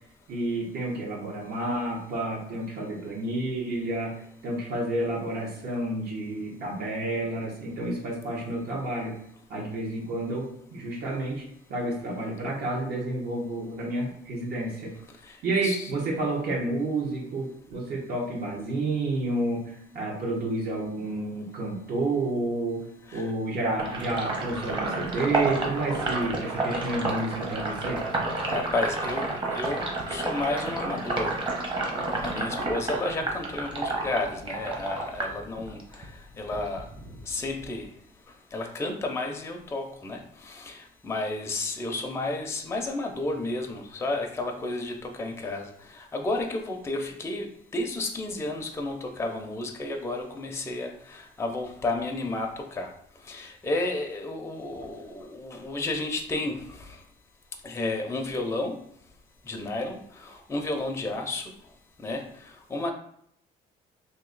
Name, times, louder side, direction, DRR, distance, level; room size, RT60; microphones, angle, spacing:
voice 1, 0.3-9.2 9.5-14.9 15.4-22.9 23.1-28.0, right 2 dB, 65° right, -3 dB, 1.1 m, -30 dB
voice 2, 15.3-15.9 23.1-23.3 28.5-31.4 32.2-36.8 37.3-37.9 38.5-52.9 53.3-57.0 57.6-58.8 59.5-61.5 62.0-62.3 62.7-62.9, left 2 dB, 15° left, 3 dB, 0.5 m, -32 dB
Sink (filling or washing), 23.8-36.1 36.4-37.8, right 2 dB, 30° right, 0.9 m, -30 dB
2.9 x 2.7 x 3.9 m, 0.70 s
cardioid pair, 110°, 17 cm